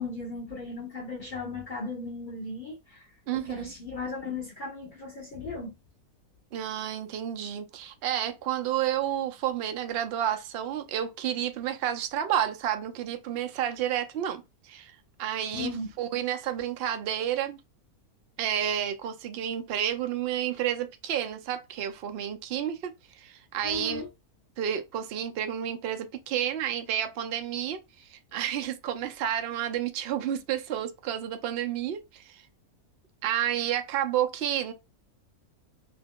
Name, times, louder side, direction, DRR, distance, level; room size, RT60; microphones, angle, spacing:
voice 1, 0.0-5.7 15.5-15.9 23.6-24.1, left 3 dB, 55° left, 0.5 m, -36 dB
voice 2, 3.3-3.7 6.5-14.9 15.2-15.7 16.0-17.6 18.4-22.9 23.2-24.0 24.6-32.4 33.2-34.7, right 10 dB, 85° right, 0.5 m, -30 dB
2.7 x 2.2 x 3.5 m
omnidirectional pair, 1.6 m